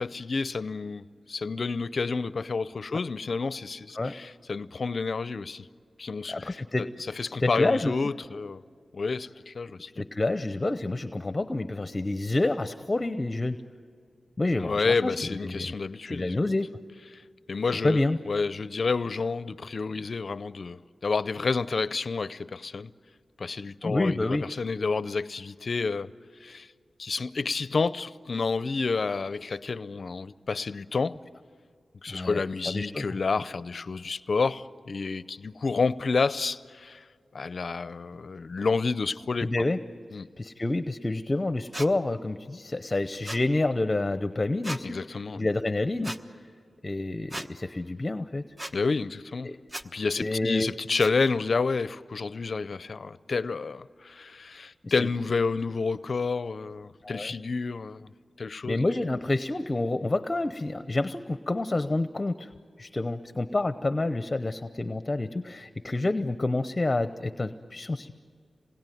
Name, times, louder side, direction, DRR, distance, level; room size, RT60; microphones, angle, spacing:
voice 1, 0.0-5.6 6.0-6.9 7.2-8.6 8.9-10.0 14.6-16.4 17.5-22.9 23.4-26.1 26.4-26.7 27.0-31.2 32.0-37.0 37.3-39.5 40.1-40.3 44.8-45.5 48.7-49.5 49.9-58.1 58.4-58.8, left 4 dB, 60° left, 0.6 m, -29 dB
voice 2, 6.3-7.9 10.0-13.6 14.4-15.1 15.4-15.7 16.0-16.7 17.8-18.2 23.8-24.4 32.1-33.1 39.4-39.8 40.4-45.0 45.3-46.1 46.8-48.5 49.4-49.6 50.2-50.7 54.8-55.1 57.0-57.3 58.6-62.5 62.8-68.1, left 2 dB, 30° left, 0.8 m, -28 dB
sound 1, 41.7-41.9 43.2-43.4 44.6-44.8 46.0-46.2 47.3-47.5 48.6-48.7 49.7-49.9 51.0-51.1, right 1 dB, 25° right, 1.2 m, -36 dB
27.5 x 21.0 x 9.3 m
cardioid pair, 65°, 0 cm